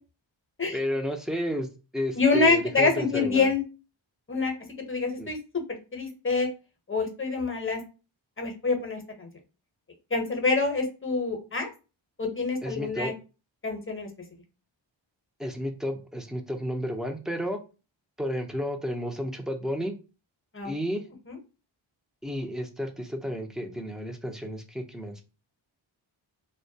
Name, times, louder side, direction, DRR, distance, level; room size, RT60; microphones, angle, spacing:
voice 1, 0.7-1.7 1.9-3.5 5.2-5.3 12.6-13.1 15.4-17.6 18.2-20.0 20.6-21.0 22.2-25.2, equal, ahead, 4 dB, 0.4 m, -32 dB
voice 2, 2.2-3.6 4.3-4.5 4.9-5.4 5.7-6.5 6.9-7.8 8.4-9.3 10.1-11.7 12.2-13.1 13.6-14.1 20.5-20.7 21.3-21.4, left 4 dB, 25° left, 4 dB, 0.7 m, -26 dB
2.2 x 2.2 x 2.7 m, 0.32 s
cardioid pair, 50°, 47 cm